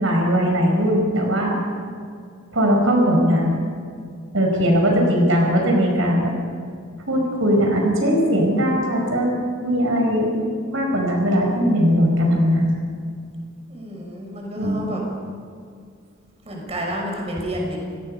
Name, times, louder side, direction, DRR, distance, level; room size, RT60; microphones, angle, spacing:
voice 1, 0.0-1.6 2.5-3.6 4.3-6.3 7.1-9.3 9.6-12.8 14.6-14.9, equal, 75° right, 1 dB, 5.2 m, -19 dB
voice 2, 13.7-15.0 16.4-17.8, equal, 30° right, -1 dB, 5.8 m, -30 dB
29.0 x 18.5 x 5.5 m, 2.2 s
head